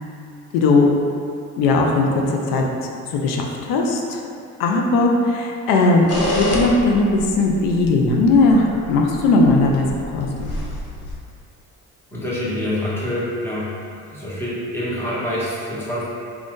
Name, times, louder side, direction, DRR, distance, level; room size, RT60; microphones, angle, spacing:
voice 1, 0.5-0.9 1.6-2.2 2.5-2.6 3.1-4.2 4.6-9.9 10.1-10.5, left 3 dB, 85° left, 0 dB, 0.5 m, -18 dB
sound 1, 6.1-11.2, left 2 dB, 50° left, 0.7 m, -28 dB
voice 2, 12.1-13.7 14.1-16.0, left 1 dB, 5° left, -8 dB, 0.9 m, -26 dB
2.6 x 2.3 x 3.5 m, 2.3 s
cardioid pair, 85°, 32 cm